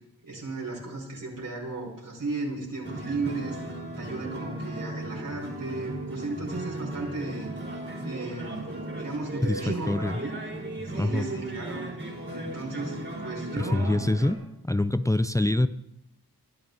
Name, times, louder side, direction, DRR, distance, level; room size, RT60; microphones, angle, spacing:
voice 1, 0.2-3.6 4.0-7.5 8.0-10.3 10.8-11.8 12.3-14.0, right 3 dB, 60° right, -3 dB, 5.6 m, -35 dB
sound 1, 2.8-14.3, right 1 dB, 30° right, 4.6 m, -36 dB
voice 2, 9.4-10.2 11.0-11.3 13.6-14.4 14.6-15.7, left 1 dB, 10° left, 13 dB, 0.5 m, -25 dB
22.0 x 12.0 x 4.1 m, 0.81 s
wide cardioid pair, 80°, 38 cm